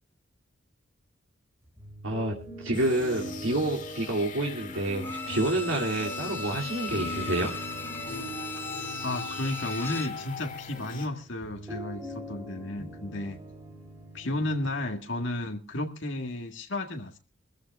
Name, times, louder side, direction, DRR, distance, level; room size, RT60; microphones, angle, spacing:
sound 1, 1.6-15.0, right 2 dB, 15° right, 3.9 m, -44 dB
voice 1, 2.0-2.4 2.6-7.5, right 1 dB, 85° right, 2.5 m, -28 dB
sound 2, 2.7-11.1, left 3 dB, 40° left, 2.2 m, -40 dB
Bowed string instrument, 5.0-10.2 10.6-10.7, left 4 dB, 10° left, 0.8 m, -37 dB
voice 2, 9.0-13.4 14.1-17.2, left 1 dB, 70° left, 1.7 m, -33 dB
24.5 x 14.5 x 2.3 m
head